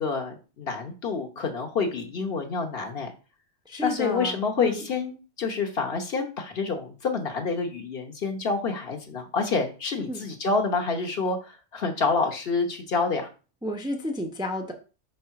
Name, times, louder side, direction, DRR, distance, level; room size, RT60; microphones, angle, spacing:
voice 1, 0.0-3.1 3.8-5.1 5.4-13.3, left 4 dB, 55° left, 3 dB, 1.2 m, -28 dB
voice 2, 3.7-4.9 10.1-10.2 13.6-14.7, left 1 dB, 5° right, 3 dB, 0.7 m, -31 dB
5.6 x 3.3 x 5.7 m, 0.34 s
omnidirectional pair, 1.3 m